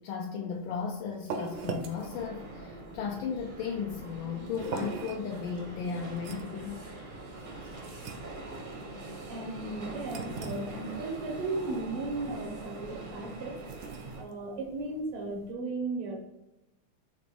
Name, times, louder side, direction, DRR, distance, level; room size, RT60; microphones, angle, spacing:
voice 1, 0.0-6.8, left 6 dB, 80° left, -1 dB, 1.3 m, -35 dB
sound 1, 0.5-15.5, right 5 dB, 70° right, 1.0 m, -43 dB
sound 2, 1.5-14.2, right 2 dB, 50° right, 0.6 m, -43 dB
voice 2, 9.3-13.6 14.2-16.3, right 2 dB, 85° right, 2 dB, 1.8 m, -36 dB
5.0 x 3.0 x 3.4 m, 0.95 s
omnidirectional pair, 2.3 m